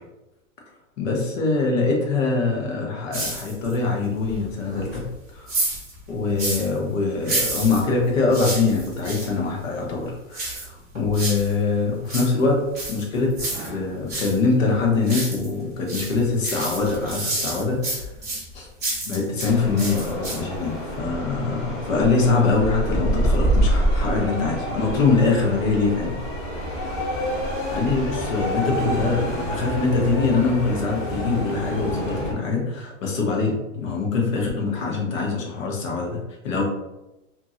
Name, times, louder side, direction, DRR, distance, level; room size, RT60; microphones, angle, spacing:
voice 1, 1.0-5.0 5.3-5.6 6.1-12.6 12.9-13.4 13.7-18.1 18.5-18.7 19.0-26.2 27.7-36.6, left 4 dB, 90° left, 0 dB, 1.1 m, -23 dB
sound 1, 3.1-3.8 4.2-6.8 7.2-9.3 10.3-11.5 11.9-14.4 14.7-15.6 15.9-19.5 19.8-20.6 20.9-21.0, right 2 dB, 15° right, 0.3 m, -30 dB
sound 2, 19.4-32.3, equal, 40° left, 0.9 m, -27 dB
2.8 x 2.7 x 2.5 m, 0.95 s
supercardioid pair, 180°, 38 cm